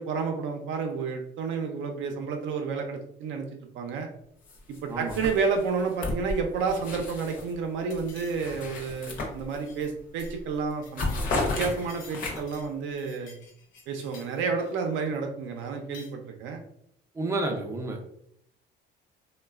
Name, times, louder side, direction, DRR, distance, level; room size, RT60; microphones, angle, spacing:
voice 1, 0.0-3.5 3.7-4.1 4.8-11.1 11.6-13.3 13.9-16.6, right 5 dB, 70° right, 3 dB, 0.5 m, -30 dB
sound 1, 4.5-4.8 5.1-7.5 7.9-9.8 10.2-10.4 10.7-12.6, left 2 dB, 45° left, 0.6 m, -33 dB
sound 2, 7.9-8.7 9.0-9.3 9.6-9.9 10.2-10.4 10.6-12.7 13.0-14.8 15.7-16.1, left 4 dB, 80° left, 0.7 m, -52 dB
voice 2, 17.1-18.1, right 2 dB, 15° right, 3 dB, 0.4 m, -30 dB
3.0 x 2.1 x 2.3 m, 0.71 s
cardioid pair, 155°, 20 cm